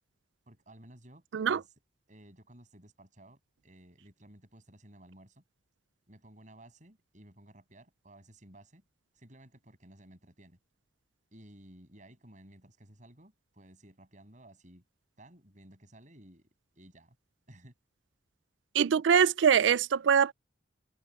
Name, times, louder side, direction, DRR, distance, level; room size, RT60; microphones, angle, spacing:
voice 1, 0.5-1.7 2.1-5.4 6.1-8.8 9.1-10.6 11.3-14.8 15.2-16.5 16.7-17.2 17.5-17.7, right 1 dB, 45° right, 6.9 m, -55 dB
voice 2, 18.7-20.3, right 7 dB, 80° right, 0.4 m, -23 dB
head